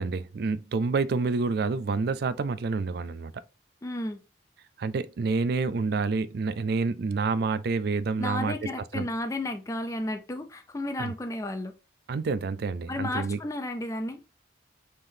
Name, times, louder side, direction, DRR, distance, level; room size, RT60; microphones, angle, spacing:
voice 1, 0.0-3.4 4.8-8.6 8.9-9.1 11.0-11.1 12.1-13.4, right 4 dB, 55° right, 0.3 m, -28 dB
voice 2, 3.8-4.2 8.2-11.7 12.9-14.2, left 1 dB, 15° left, 0.4 m, -33 dB
5.6 x 3.4 x 2.7 m
head